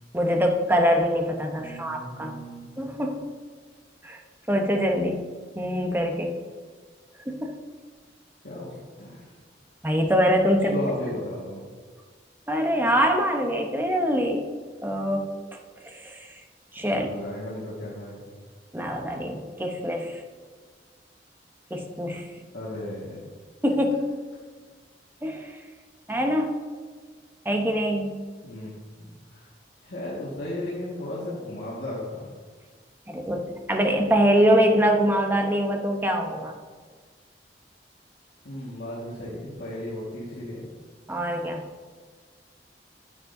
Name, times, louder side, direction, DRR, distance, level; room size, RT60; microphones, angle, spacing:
voice 1, 0.1-2.3 2.8-3.3 4.0-4.2 4.5-5.3 5.6-6.4 7.3-7.6 9.8-10.8 12.5-14.5 14.8-15.3 15.8-16.2 16.7-17.1 18.7-20.2 21.7-22.3 23.6-24.2 25.2-25.6 26.1-26.6 27.4-28.2 33.1-36.5 41.1-41.6, equal, 10° right, 3 dB, 0.8 m, -24 dB
voice 2, 1.6-2.7 8.4-9.3 10.7-11.6 16.9-18.2 22.5-23.3 28.4-29.5 29.8-32.3 38.4-40.6, left 1 dB, 75° left, -7 dB, 1.7 m, -35 dB
9.8 x 9.4 x 2.7 m, 1.5 s
head